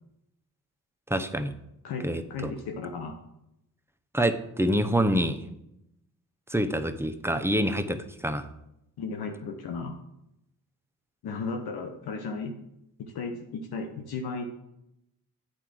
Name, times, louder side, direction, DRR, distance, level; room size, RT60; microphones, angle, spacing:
voice 1, 1.1-1.5 2.0-2.5 4.1-5.4 6.5-8.5, right 1 dB, 5° right, 7 dB, 0.8 m, -26 dB
voice 2, 1.8-3.2 9.0-10.0 11.2-12.5 13.0-14.5, left 4 dB, 90° left, 4 dB, 0.9 m, -35 dB
8.7 x 4.8 x 6.2 m, 0.82 s
cardioid pair, 65°, 37 cm